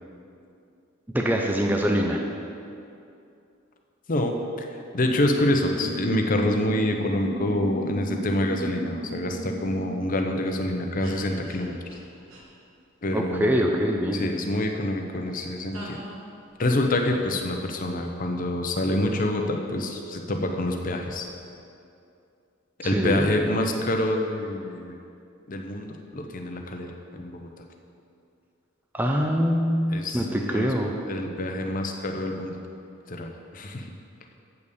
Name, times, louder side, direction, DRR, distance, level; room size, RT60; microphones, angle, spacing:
voice 1, 1.1-2.2 13.1-14.3 22.8-23.3 28.9-30.9, equal, 10° right, 1 dB, 0.5 m, -24 dB
voice 2, 4.1-11.7 13.0-13.7 14.1-16.0 16.6-21.3 22.8-25.0 25.5-27.5 29.9-30.7 31.1-32.6 33.1-33.9, left 1 dB, 40° left, 3 dB, 0.7 m, -27 dB
sound 1, 5.2-10.0 11.0-11.1 11.4-11.6 11.9-12.0 12.3-12.4 15.7-16.3, right 1 dB, 85° right, 1.5 m, -36 dB
8.0 x 5.4 x 6.8 m, 2.6 s
head